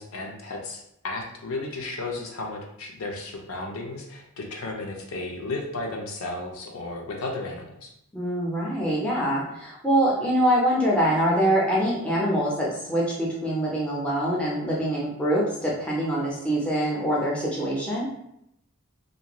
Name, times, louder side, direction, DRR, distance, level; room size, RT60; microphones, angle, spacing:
voice 1, 0.0-7.9, left 2 dB, 75° left, 1 dB, 0.5 m, -34 dB
voice 2, 8.1-18.1, equal, 5° left, -5 dB, 0.5 m, -24 dB
2.5 x 2.2 x 2.9 m, 0.78 s
head